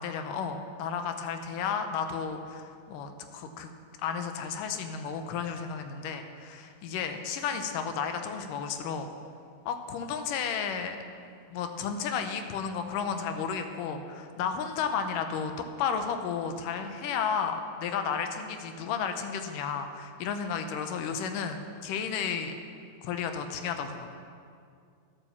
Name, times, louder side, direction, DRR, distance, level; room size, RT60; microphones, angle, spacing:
voice 1, 0.0-3.7 4.0-9.1 9.7-11.0 11.5-15.5 15.8-22.5 23.0-24.1, left 6 dB, 75° left, 6 dB, 2.2 m, -33 dB
11.5 x 8.5 x 7.1 m, 2.3 s
omnidirectional pair, 4.2 m